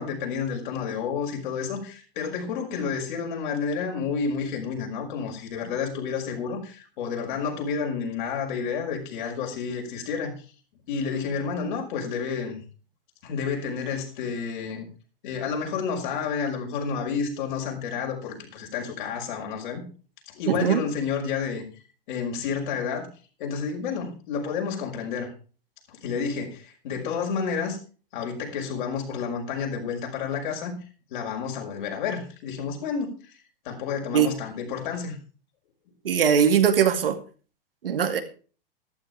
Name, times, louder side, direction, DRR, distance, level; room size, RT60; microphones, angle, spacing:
voice 1, 0.0-10.3 10.9-12.6 13.2-14.9 15.2-19.9 20.3-21.6 22.1-23.1 23.4-25.3 25.9-27.8 28.1-30.8 31.1-33.3 33.6-35.2, left 6 dB, 55° left, 1 dB, 5.7 m, -30 dB
voice 2, 20.5-20.8 34.1-34.3 36.0-37.2 37.8-38.2, right 8 dB, 70° right, 7 dB, 2.4 m, -20 dB
14.5 x 12.5 x 3.5 m, 0.38 s
figure-of-eight pair, 105°, 29 cm